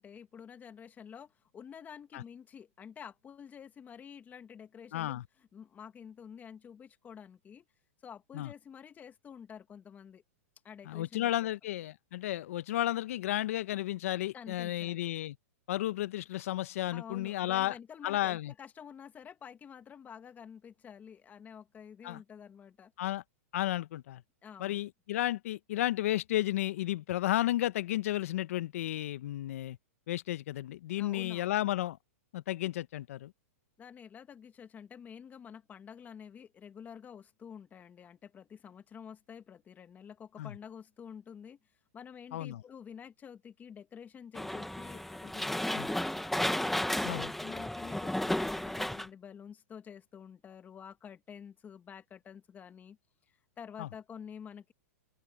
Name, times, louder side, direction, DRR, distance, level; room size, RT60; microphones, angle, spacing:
voice 1, 0.0-7.7 8.0-10.2 10.6-11.5 14.3-15.1 16.9-22.9 24.4-24.8 31.0-31.5 33.8-41.6 41.9-46.2 47.1-53.0 53.6-54.7, left 7 dB, 20° left, 1.9 m, -49 dB
voice 2, 4.9-5.2 8.3-8.5 10.8-15.4 15.7-17.7 18.0-18.5 22.0-22.2 23.0-23.2 23.5-24.2 24.6-29.8 30.1-32.0 32.3-33.3 40.4-40.5 42.3-42.6 45.8-45.9 47.0-47.3 53.8-53.9, left 14 dB, 65° left, 1.1 m, -33 dB
sound 1, 44.3-49.1, left 1 dB, ahead, 1.2 m, -33 dB
open air
hypercardioid pair, 130°, 8 cm